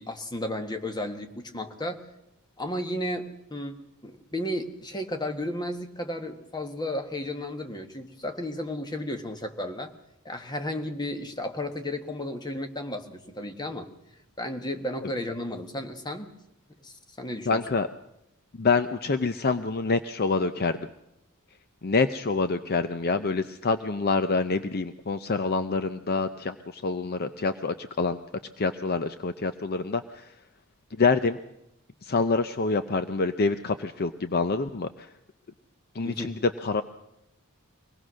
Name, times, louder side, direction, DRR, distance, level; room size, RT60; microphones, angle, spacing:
voice 1, 0.0-2.0 2.6-3.7 4.0-9.9 10.2-13.9 14.4-16.3 16.8-17.6 36.0-36.3, left 1 dB, 20° left, 6 dB, 1.5 m, -33 dB
voice 2, 17.5-17.9 18.6-20.8 21.8-28.2 28.6-30.3 31.0-31.4 32.0-35.1 35.9-36.4 36.6-36.8, left 4 dB, 45° left, 10 dB, 0.7 m, -26 dB
23.5 x 18.5 x 6.3 m, 0.85 s
head